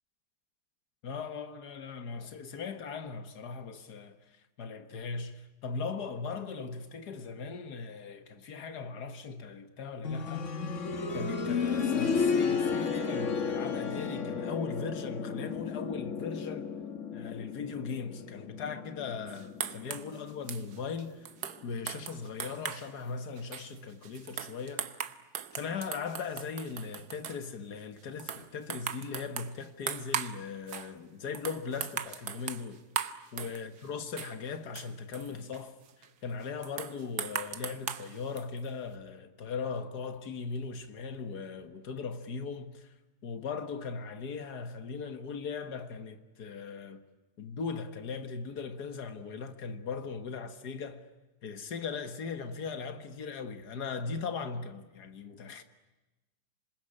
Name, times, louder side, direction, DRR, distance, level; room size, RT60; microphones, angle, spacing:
voice 1, 1.0-10.5 11.1-16.7 17.1-21.3 21.6-24.9 25.5-32.8 33.3-42.9 43.2-47.0 47.4-51.1 51.4-55.6, left 5 dB, 80° left, 2.1 m, -39 dB
sound 1, 10.0-20.8 22.2-22.3, left 5 dB, 50° left, 1.8 m, -33 dB
sound 2, 19.3-22.9 23.4-27.5 28.0-30.4 30.7-30.9 31.3-33.9 34.2-36.1 36.6-38.7, right 9 dB, 80° right, 1.6 m, -39 dB
27.0 x 21.0 x 10.0 m
omnidirectional pair, 1.7 m